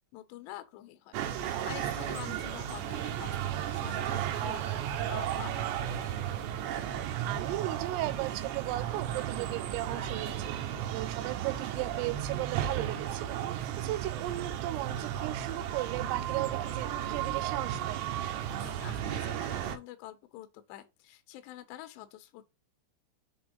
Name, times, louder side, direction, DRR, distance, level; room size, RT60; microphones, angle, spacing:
voice 1, 0.1-5.7 18.6-22.4, left 14 dB, 75° left, 2.8 m, -47 dB
sound 1, 1.1-19.8, right 10 dB, 75° right, 2.8 m, -34 dB
voice 2, 7.2-18.0, right 17 dB, 90° right, 3.3 m, -36 dB
7.1 x 4.2 x 5.4 m
omnidirectional pair, 5.9 m